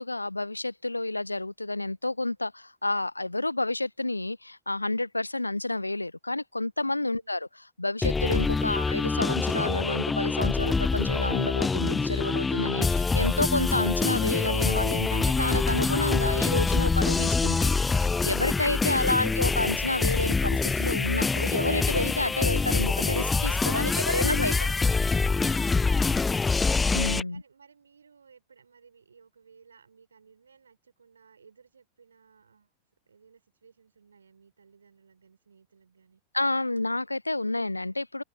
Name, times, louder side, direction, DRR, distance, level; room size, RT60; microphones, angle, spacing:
voice 1, 0.0-7.5 7.8-17.7 18.0-24.9 26.9-27.4 36.3-38.2, left 2 dB, 85° left, 0.4 m, -29 dB
sound 1, 8.0-27.2, left 4 dB, 10° left, 0.5 m, -25 dB
voice 2, 27.3-32.7 33.1-36.2, right 6 dB, 75° right, 5.2 m, -59 dB
figure-of-eight pair, 90°, 0 cm